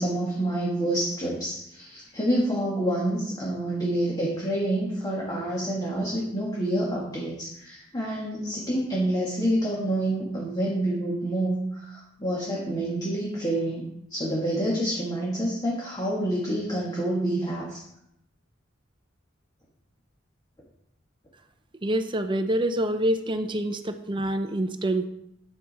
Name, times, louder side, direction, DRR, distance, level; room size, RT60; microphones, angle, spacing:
voice 1, 0.0-13.8 14.1-17.8, right 1 dB, 20° left, -4 dB, 1.9 m, -27 dB
voice 2, 21.8-25.1, right 1 dB, 25° right, 8 dB, 0.7 m, -26 dB
11.5 x 7.1 x 4.3 m, 0.80 s
head